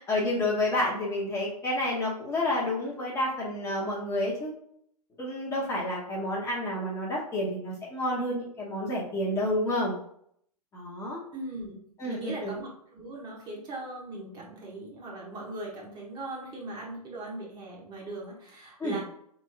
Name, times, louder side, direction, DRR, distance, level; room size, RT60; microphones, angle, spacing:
voice 1, 0.0-4.5 5.2-10.0 10.7-11.2 12.0-12.5 18.8-19.0, left 1 dB, 15° left, -4 dB, 1.1 m, -29 dB
voice 2, 11.3-11.8 12.0-19.0, right 2 dB, 20° right, -3 dB, 1.2 m, -39 dB
3.5 x 3.3 x 3.5 m, 0.66 s
figure-of-eight pair, 110°, 20 cm